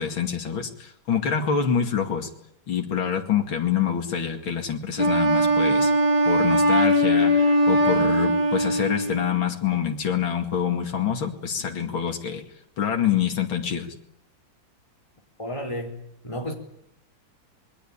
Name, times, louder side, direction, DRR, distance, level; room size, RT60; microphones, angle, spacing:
voice 1, 0.0-2.3 2.7-5.9 6.3-12.4 12.8-13.9, left 8 dB, 80° left, 3.1 m, -26 dB
Wind instrument woodwind instrument, 5.0-9.3, equal, 55° right, 5.0 m, -20 dB
voice 2, 15.4-16.0 16.2-16.5, equal, 15° left, 4.0 m, -31 dB
27.0 x 21.5 x 8.8 m
omnidirectional pair, 2.1 m